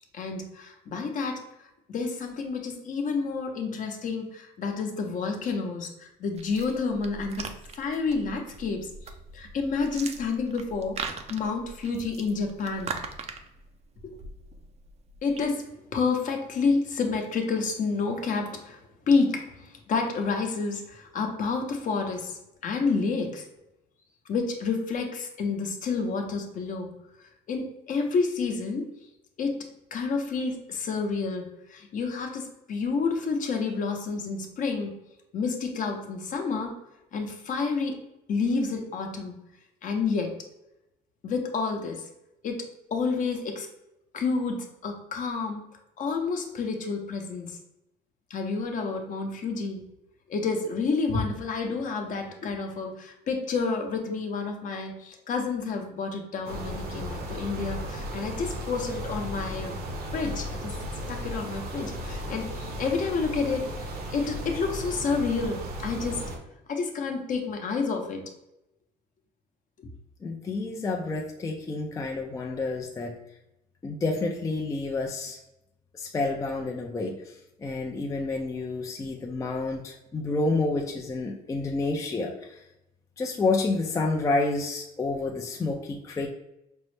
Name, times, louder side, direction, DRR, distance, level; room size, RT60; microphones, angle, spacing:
voice 1, 0.0-1.4 1.9-8.9 9.3-11.0 11.3-12.9 14.0-14.2 15.2-18.8 19.1-23.5 24.3-26.9 27.2-28.9 29.4-34.9 35.3-36.7 37.1-38.0 38.3-39.4 39.8-40.3 41.2-42.1 42.4-43.7 44.1-45.7 46.0-47.6 48.3-49.8 50.3-59.8 60.1-60.8 61.1-63.7 64.1-66.3 66.7-68.2 69.8-69.9, left 4 dB, 50° left, 3 dB, 0.7 m, -29 dB
sound 1, 6.3-15.5, right 5 dB, 40° right, 0.4 m, -41 dB
sound 2, 56.4-66.4, equal, 65° right, 0.8 m, -35 dB
voice 2, 70.2-73.1 73.8-75.4 75.9-82.6 83.2-86.3, left 3 dB, 20° left, 1 dB, 0.4 m, -29 dB
5.3 x 2.0 x 3.2 m, 0.89 s
cardioid pair, 110°, 17 cm